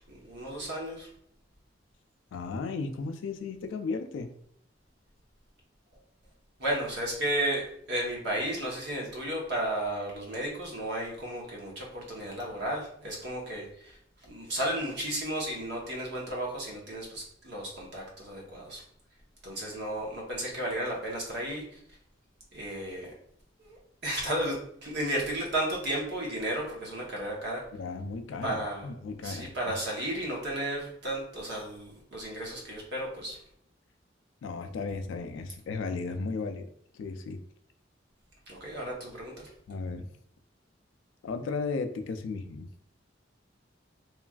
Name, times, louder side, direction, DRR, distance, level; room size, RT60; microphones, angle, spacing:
voice 1, 0.1-1.1 6.6-13.9 14.2-18.8 19.4-21.6 22.5-23.1 23.6-27.6 28.4-28.9 29.2-33.4 38.5-39.3, right 1 dB, 60° right, -2 dB, 0.9 m, -33 dB
voice 2, 2.3-4.3 27.7-29.7 34.4-37.4 39.7-40.1 41.2-42.7, left 4 dB, 75° left, 7 dB, 0.3 m, -35 dB
3.0 x 2.4 x 2.3 m, 0.68 s
head